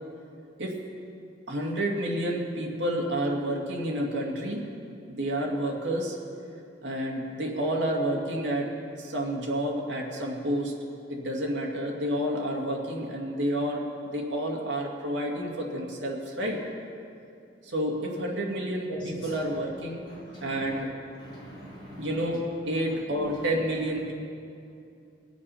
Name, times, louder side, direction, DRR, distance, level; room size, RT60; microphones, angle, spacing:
voice 1, 1.5-4.6 5.1-6.2 6.8-8.7 9.0-10.7 11.1-16.6 17.6-20.0 20.4-20.9 22.0-24.1, right 1 dB, 80° right, -2 dB, 2.2 m, -29 dB
voice 2, 18.9-19.3 20.1-20.8 21.2-22.1, right 1 dB, 25° left, -8 dB, 3.8 m, -42 dB
21.0 x 7.4 x 5.6 m, 2.6 s
head